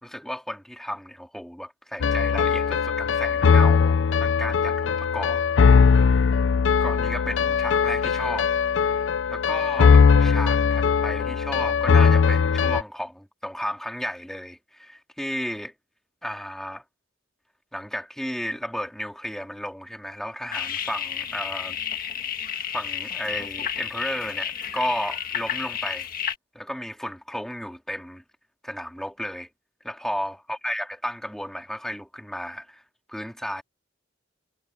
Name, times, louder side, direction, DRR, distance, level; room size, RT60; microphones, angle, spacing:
voice 1, 0.0-5.4 6.8-8.5 8.8-9.0 9.3-15.7 16.2-16.8 17.7-21.8 22.7-26.1 26.5-28.2 28.6-29.5 29.8-32.8 33.1-33.6, equal, ahead, 2.6 m, -33 dB
sound 1, 2.0-12.8, left 5 dB, 90° left, 0.5 m, -20 dB
sound 2, 20.5-26.4, left 8 dB, 50° left, 1.7 m, -31 dB
head